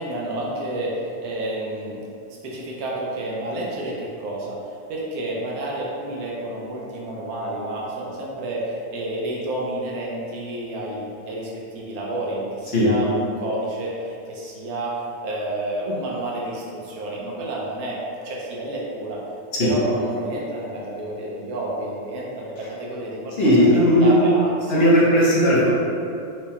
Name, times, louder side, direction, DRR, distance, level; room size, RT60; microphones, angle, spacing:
voice 1, 0.0-2.0 2.4-19.2 19.6-23.5 24.0-24.7, right 1 dB, 85° right, -4 dB, 1.1 m, -30 dB
voice 2, 23.4-24.3 24.7-25.7, equal, 50° left, -7 dB, 0.9 m, -16 dB
4.6 x 2.1 x 2.8 m, 2.6 s
omnidirectional pair, 1.5 m